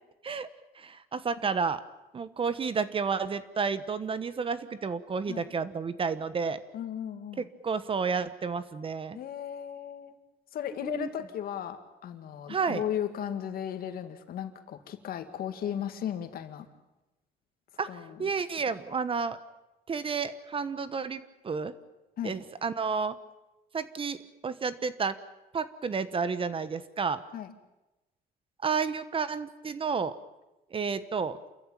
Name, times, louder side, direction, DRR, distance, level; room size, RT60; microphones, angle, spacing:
voice 1, 0.7-1.8 2.1-6.6 7.4-9.2 10.8-11.1 12.5-12.8 17.8-19.4 19.9-21.7 22.2-23.1 23.7-25.2 25.5-27.2 28.6-30.1 30.7-31.4, right 5 dB, 30° right, 14 dB, 1.2 m, -31 dB
voice 2, 6.7-7.4 9.1-10.2 10.5-16.7 17.9-18.3 22.2-22.4 27.3-27.5, left 9 dB, 60° left, 7 dB, 2.3 m, -36 dB
28.0 x 14.5 x 9.1 m, 0.99 s
cardioid pair, 110°, 17 cm